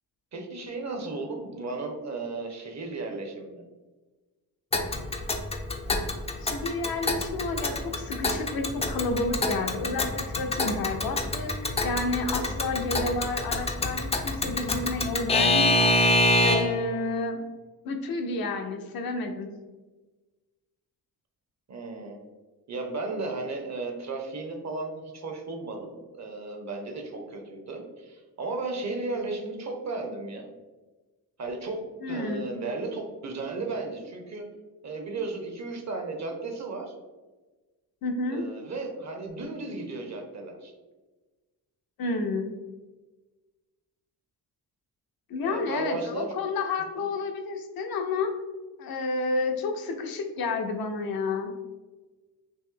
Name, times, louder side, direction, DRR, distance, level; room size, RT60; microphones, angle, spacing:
voice 1, 0.3-3.6 12.9-13.2 21.7-22.2 22.7-30.5 31.4-34.5 34.8-36.9 38.3-40.7 45.4-46.3 47.0-47.1, right 3 dB, 45° right, 3 dB, 0.7 m, -35 dB
Alarm / Clock, 4.7-16.9, left 2 dB, 15° left, 0.3 m, -26 dB
voice 2, 6.4-17.4 17.8-19.5 32.0-32.4 38.0-38.5 42.0-42.5 45.3-48.3 48.8-51.5, left 3 dB, 65° left, 4 dB, 0.6 m, -30 dB
3.1 x 2.6 x 3.7 m, 1.2 s
cardioid pair, 80°, 39 cm